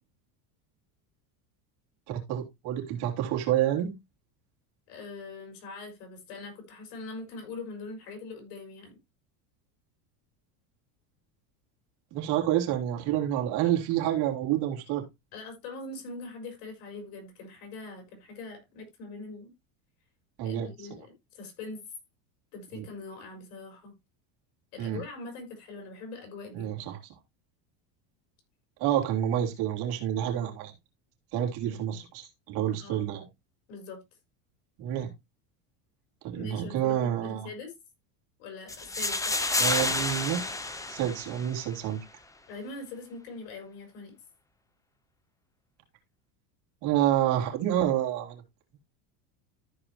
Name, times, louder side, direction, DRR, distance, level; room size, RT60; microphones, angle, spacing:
voice 1, 2.1-3.9 12.1-15.0 20.4-20.7 22.8-22.9 24.8-25.0 26.5-27.0 28.8-30.7 31.3-33.2 34.8-35.1 36.2-37.5 39.6-40.5 40.9-42.0 46.8-48.4, right 11 dB, 55° right, 3.2 m, -28 dB
voice 2, 4.9-9.0 15.3-19.5 20.4-21.1 21.3-21.8 22.5-23.9 24.7-26.7 31.6-31.8 32.8-33.1 33.7-34.0 36.3-37.7 38.4-39.6 42.5-44.1, left 3 dB, 65° left, 4.9 m, -42 dB
sound 1, 38.7-41.7, left 2 dB, 5° left, 0.7 m, -30 dB
14.0 x 5.0 x 2.9 m
supercardioid pair, 140°, 45 cm